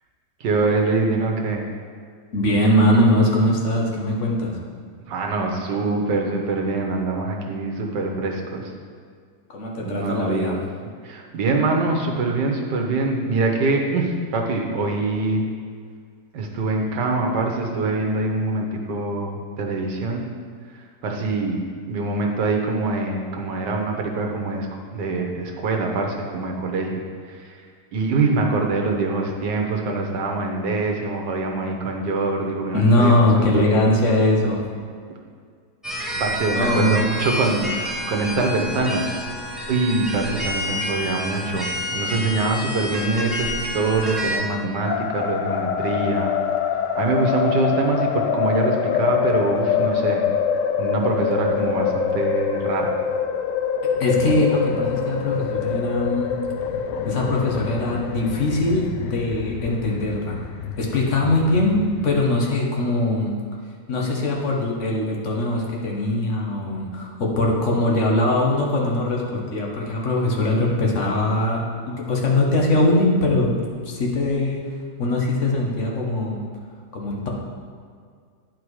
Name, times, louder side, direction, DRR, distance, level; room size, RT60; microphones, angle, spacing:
voice 1, 0.4-1.6 5.1-8.7 9.8-10.5 10.8-15.5 16.3-20.2 20.7-21.6 21.9-24.7 24.9-27.6 27.9-33.8 36.2-39.1 39.7-46.3 46.9-50.2 50.8-53.0, right 3 dB, 80° right, 1 dB, 1.6 m, -24 dB
voice 2, 2.3-4.5 9.5-10.6 32.7-34.6 36.5-37.0 53.8-56.3 57.1-60.4 60.8-61.8 62.0-63.3 63.9-73.5 73.8-74.6 75.0-76.4 76.9-77.3, left 1 dB, 45° left, -1 dB, 1.4 m, -21 dB
sound 1, 35.8-44.4, equal, ahead, 0.8 m, -29 dB
sound 2, 44.8-62.2, left 7 dB, 80° left, 1.2 m, -25 dB
10.0 x 4.6 x 4.8 m, 2.1 s
omnidirectional pair, 1.8 m